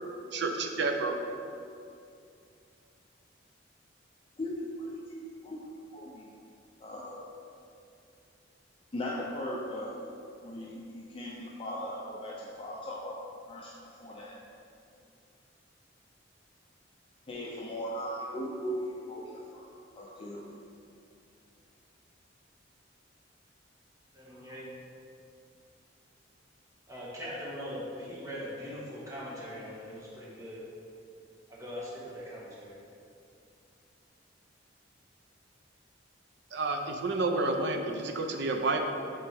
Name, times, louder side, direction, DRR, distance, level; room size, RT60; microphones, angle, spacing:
voice 1, 0.3-1.2 36.5-38.8, right 3 dB, 65° right, 4 dB, 0.5 m, -30 dB
voice 2, 4.4-5.6 5.9-6.3 6.8-7.3 8.9-13.2 13.5-13.7 14.0-14.4 17.3-19.7 19.9-20.6, equal, 30° left, -4 dB, 0.5 m, -38 dB
voice 3, 24.3-24.6 26.9-30.6 31.5-32.7, equal, 15° right, -7 dB, 1.4 m, -41 dB
6.8 x 4.4 x 3.5 m, 2.5 s
head